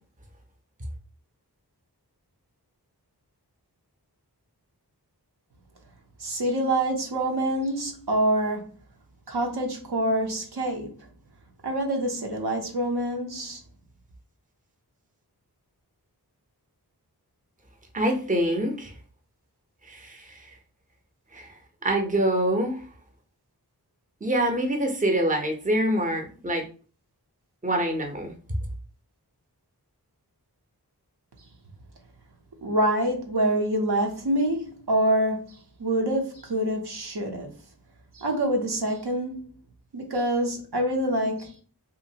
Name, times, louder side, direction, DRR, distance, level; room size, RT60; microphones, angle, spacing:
voice 1, 6.2-8.6 9.3-10.9 11.6-13.6 32.6-35.4 35.8-37.5 38.1-39.4 39.9-41.5, right 1 dB, 75° right, 0.7 m, -26 dB
voice 2, 17.9-18.9 19.8-20.5 21.3-21.5 21.8-22.8 24.2-26.6 27.6-28.3, right 1 dB, 20° right, 0.6 m, -25 dB
2.8 x 2.5 x 2.7 m
wide cardioid pair, 40°, 40 cm